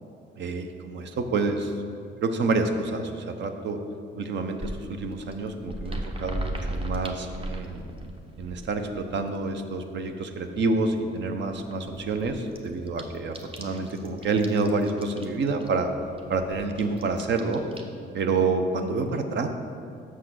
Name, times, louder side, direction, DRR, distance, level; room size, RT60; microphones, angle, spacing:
voice 1, 0.4-1.7 2.2-3.8 4.2-7.9 8.4-15.9 16.3-17.6 18.1-19.5, right 3 dB, 65° right, 6 dB, 0.7 m, -28 dB
sound 1, 4.4-9.6 10.0-10.6 10.8-10.9 11.2-11.3 11.5-17.8, right 1 dB, 25° right, 0.9 m, -37 dB
6.3 x 5.7 x 6.2 m, 2.4 s
cardioid pair, 90°, 20 cm